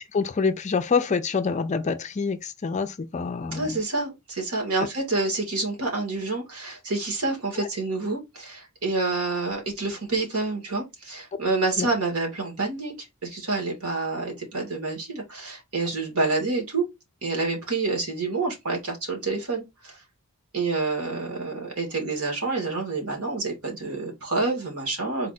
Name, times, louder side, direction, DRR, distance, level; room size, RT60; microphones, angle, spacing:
voice 1, 0.0-3.8 11.8-11.9, left 5 dB, 30° left, 0.4 m, -26 dB
voice 2, 3.5-12.9 13.2-16.9 17.2-20.0 20.5-25.3, right 3 dB, 75° right, 1.9 m, -28 dB
4.1 x 2.5 x 4.0 m
head